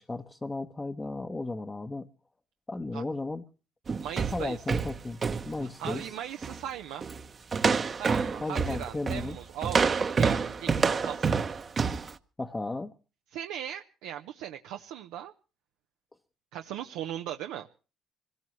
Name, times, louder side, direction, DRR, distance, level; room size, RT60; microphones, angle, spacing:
voice 1, 0.0-2.1 2.7-3.4 4.3-5.2 5.4-6.1 8.4-9.4 12.4-12.9, left 2 dB, 20° left, 0.9 m, -34 dB
sound 1, 3.9-6.1 6.4-6.6 7.0-7.2 7.5-12.1, right 5 dB, 35° right, 0.9 m, -28 dB
voice 2, 4.0-4.6 5.8-7.0 8.0-11.4 13.3-15.3 16.5-17.7, right 10 dB, 85° right, 0.7 m, -38 dB
24.5 x 17.5 x 3.1 m
cardioid pair, 90°, 0 cm